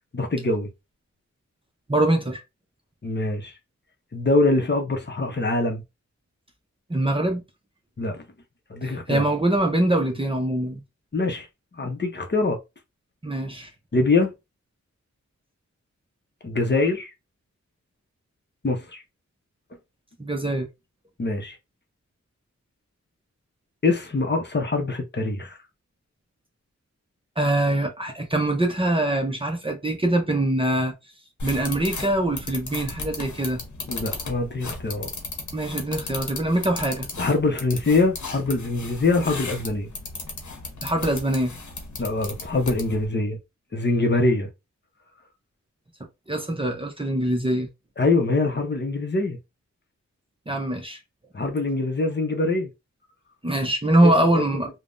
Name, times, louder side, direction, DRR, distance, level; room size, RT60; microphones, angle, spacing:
voice 1, 0.1-0.7 3.0-3.5 4.1-5.8 8.0-8.2 8.7-9.2 11.1-11.5 11.7-12.6 13.9-14.3 16.4-17.1 18.6-19.0 21.2-21.6 23.8-25.6 33.9-35.1 37.2-39.9 42.0-43.4 43.7-44.5 48.0-49.4 51.3-52.7 54.0-54.4, left 3 dB, 35° left, 0.7 m, -24 dB
voice 2, 1.9-2.4 6.9-7.4 9.1-10.8 13.2-13.7 20.2-20.7 27.4-30.9 31.4-33.6 35.5-37.1 40.8-41.5 46.3-47.7 50.5-51.0 53.4-54.7, right 1 dB, 20° right, 0.6 m, -23 dB
sound 1, 31.4-43.1, left 3 dB, 80° left, 0.9 m, -36 dB
3.3 x 2.1 x 2.5 m
wide cardioid pair, 95°, 29 cm